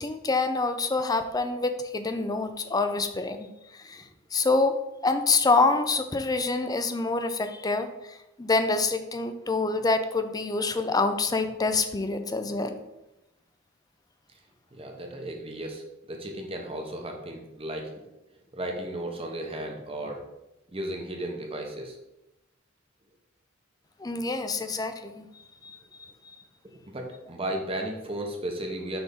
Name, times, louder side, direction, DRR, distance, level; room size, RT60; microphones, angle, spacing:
voice 1, 0.0-4.8 5.0-12.7 24.0-25.3 25.6-26.4, left 3 dB, 20° left, 8 dB, 0.5 m, -27 dB
voice 2, 14.7-18.1 18.5-20.2 20.7-22.0 26.9-29.0, right 1 dB, 30° right, 2 dB, 1.0 m, -35 dB
6.1 x 3.5 x 5.3 m, 0.95 s
head